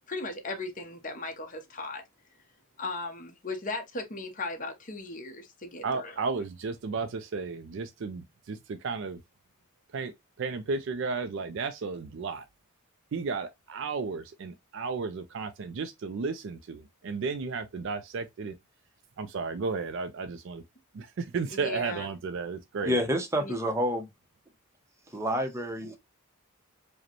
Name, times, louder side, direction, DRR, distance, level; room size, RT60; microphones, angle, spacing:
voice 1, 0.1-2.0 2.8-6.2 21.5-22.1 23.4-23.5, left 2 dB, 40° left, 0.8 m, -37 dB
voice 2, 5.8-9.2 9.9-10.1 10.4-12.5 13.1-18.6 19.2-20.6 20.9-23.0, right 4 dB, 60° right, 0.4 m, -33 dB
voice 3, 22.8-24.1 25.1-26.0, equal, 15° right, 0.7 m, -28 dB
4.9 x 2.1 x 2.9 m
head